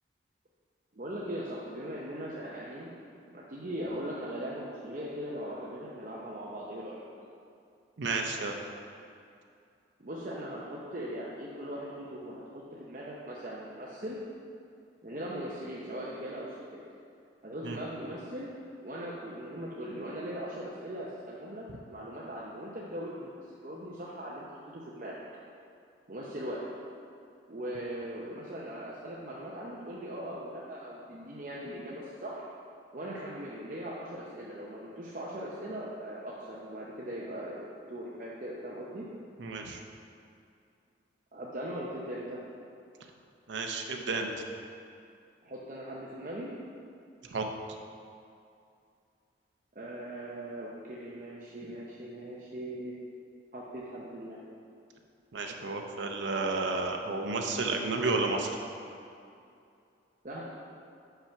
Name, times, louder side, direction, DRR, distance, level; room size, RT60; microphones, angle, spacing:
voice 1, 0.9-2.9 3.3-7.1 10.0-14.2 15.0-16.8 17.4-18.5 18.8-23.3 23.6-25.2 26.1-26.7 27.5-32.5 32.9-37.6 37.9-39.1 41.3-42.4 45.4-46.5 49.7-52.9 53.5-54.4 60.2-60.4, right 1 dB, 45° right, -5 dB, 0.7 m, -39 dB
voice 2, 8.0-8.5 17.6-17.8 39.4-39.8 43.5-44.4 47.3-47.4 55.3-58.6, right 3 dB, 80° right, 2 dB, 0.6 m, -31 dB
5.8 x 5.7 x 5.7 m, 2.5 s
head